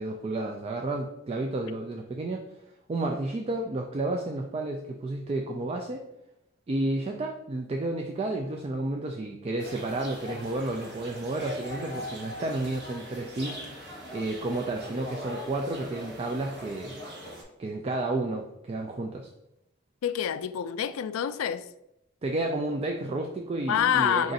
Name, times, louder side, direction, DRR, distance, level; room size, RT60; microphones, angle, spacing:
voice 1, 0.0-2.6 2.9-6.0 6.7-13.6 14.1-17.0 17.6-19.3 22.2-24.3, right 2 dB, 30° right, 0.3 m, -31 dB
sound 1, 9.6-17.4, left 1 dB, 55° right, 1.2 m, -41 dB
voice 2, 20.0-21.6 23.7-24.3, left 9 dB, 85° left, 0.3 m, -27 dB
4.9 x 2.5 x 3.9 m
head